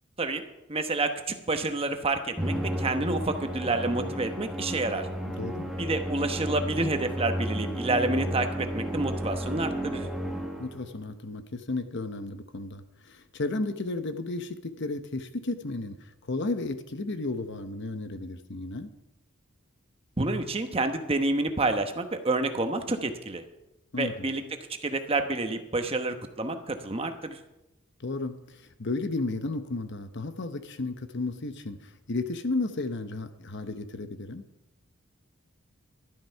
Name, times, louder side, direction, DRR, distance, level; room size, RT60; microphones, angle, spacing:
voice 1, 0.7-5.1 5.8-10.1 20.2-23.4 24.0-24.4 24.8-27.4, right 2 dB, 25° right, 7 dB, 1.0 m, -29 dB
Musical instrument, 2.4-10.9, equal, ahead, 1.4 m, -32 dB
voice 2, 10.6-16.0 16.2-18.9 23.9-24.3 28.0-34.4, left 2 dB, 55° left, 9 dB, 0.9 m, -33 dB
12.0 x 11.0 x 5.7 m, 0.92 s
head